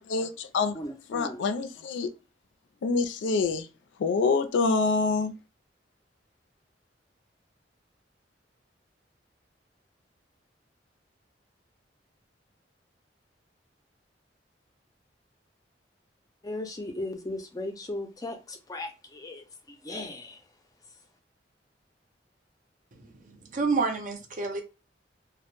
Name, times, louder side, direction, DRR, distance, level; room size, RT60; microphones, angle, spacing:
voice 1, 0.0-0.8 1.1-2.1 2.8-3.7 4.0-5.3, left 4 dB, 90° left, 0.3 m, -26 dB
voice 2, 0.7-1.4 16.4-20.4, left 1 dB, 20° left, 0.4 m, -37 dB
voice 3, 23.3-24.6, right 4 dB, 45° right, 0.5 m, -29 dB
2.0 x 2.0 x 2.9 m
head